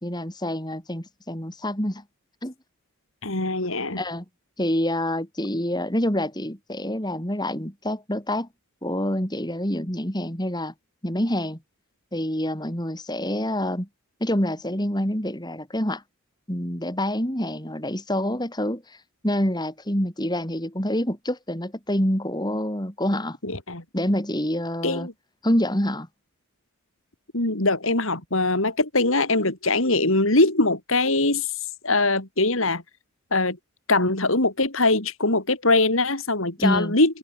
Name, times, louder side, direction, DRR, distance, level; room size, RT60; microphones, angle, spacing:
voice 1, 0.0-2.0 2.4-2.5 3.9-4.2 4.6-8.5 8.8-10.7 11.0-11.6 12.1-13.9 14.2-16.0 16.5-19.0 19.2-23.4 23.9-25.1 25.4-26.1 36.6-36.9, left 1 dB, 20° left, 4.8 m, -26 dB
voice 2, 3.2-4.0 23.4-23.8 24.8-25.1 27.3-31.5 31.8-32.8 33.3-33.6 33.9-37.2, left 2 dB, 70° left, 4.2 m, -22 dB
head